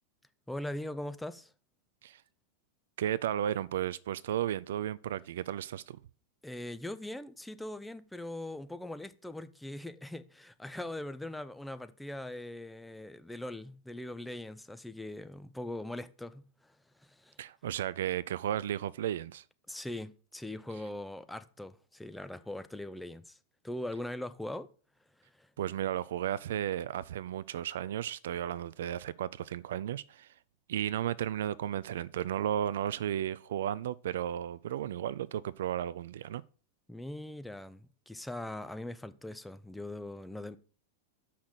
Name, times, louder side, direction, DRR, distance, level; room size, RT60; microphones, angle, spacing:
voice 1, 0.5-1.5 6.4-17.4 19.7-23.4 23.6-24.7 25.2-25.5 36.9-40.6, left 1 dB, 5° left, 0.6 m, -41 dB
voice 2, 3.0-6.0 17.4-19.4 25.6-30.3 30.7-36.4, right 11 dB, 60° right, 0.3 m, -34 dB
7.1 x 5.8 x 6.3 m
figure-of-eight pair, 90°, 0 cm